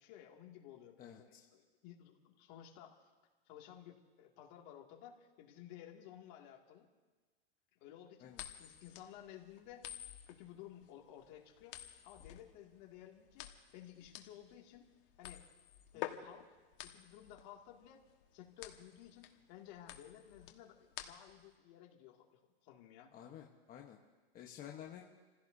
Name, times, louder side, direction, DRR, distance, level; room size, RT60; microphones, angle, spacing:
voice 1, 0.0-3.1 3.5-6.8 7.8-10.0 10.3-14.9 15.2-15.4 15.9-16.4 16.8-18.0 18.3-23.1, left 11 dB, 50° left, 1 dB, 2.5 m, -55 dB
voice 2, 1.0-1.4 8.2-8.4 15.9-16.1 23.1-24.0 24.3-25.0, left 10 dB, 30° left, 1 dB, 1.2 m, -51 dB
sound 1, 8.3-21.5, left 12 dB, 65° left, 1.6 m, -50 dB
29.0 x 16.0 x 2.8 m, 1.3 s
hypercardioid pair, 130°, 30 cm